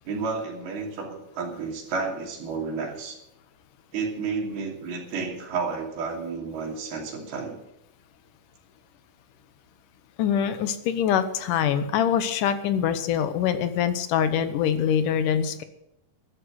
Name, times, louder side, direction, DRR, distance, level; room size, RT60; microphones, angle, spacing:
voice 1, 0.1-3.2 3.9-7.6, right 4 dB, 85° right, 0 dB, 4.7 m, -31 dB
voice 2, 10.2-15.6, left 8 dB, 70° left, 11 dB, 2.3 m, -24 dB
13.5 x 11.0 x 6.4 m, 0.85 s
omnidirectional pair, 4.3 m